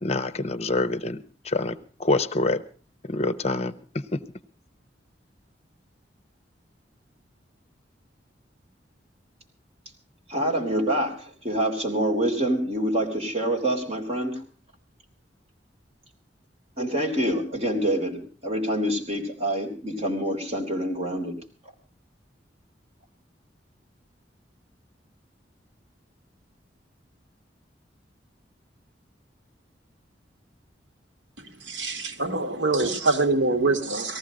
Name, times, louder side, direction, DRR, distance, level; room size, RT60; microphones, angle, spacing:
voice 1, 0.0-2.6 3.1-4.2, left 2 dB, 35° left, 13 dB, 0.7 m, -26 dB
voice 2, 10.3-14.4 16.8-21.3, right 1 dB, 35° right, 1 dB, 3.4 m, -26 dB
voice 3, 31.4-34.2, right 3 dB, 80° right, 6 dB, 1.6 m, -25 dB
18.5 x 14.5 x 5.0 m, 0.39 s
head